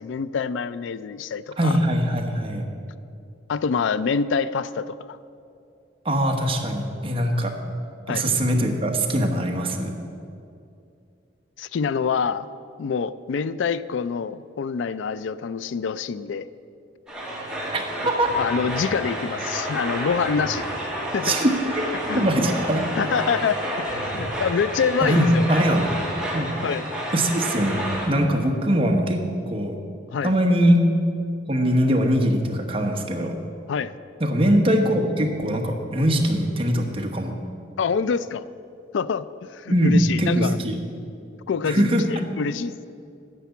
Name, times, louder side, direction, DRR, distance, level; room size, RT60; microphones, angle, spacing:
voice 1, 0.0-1.7 3.5-5.2 8.1-8.2 11.6-12.5 12.8-16.5 18.4-20.7 21.1-21.3 21.9-22.3 23.0-25.6 26.6-26.8 30.1-30.3 33.7-33.9 37.8-38.4 38.9-39.3 39.5-40.6 41.5-42.9, left 6 dB, 80° left, 16 dB, 0.4 m, -26 dB
voice 2, 1.6-2.7 6.0-7.5 8.1-9.9 17.7-18.3 21.2-21.8 22.1-22.8 24.1-24.2 25.0-25.9 26.3-26.5 27.1-27.8 28.1-29.8 30.2-30.8 31.5-33.4 34.2-37.3 39.7-40.8 41.6-42.0, equal, 30° right, 2 dB, 1.2 m, -22 dB
sound 1, 17.1-28.1, equal, 5° right, 2.0 m, -30 dB
10.0 x 6.8 x 8.2 m, 2.5 s
head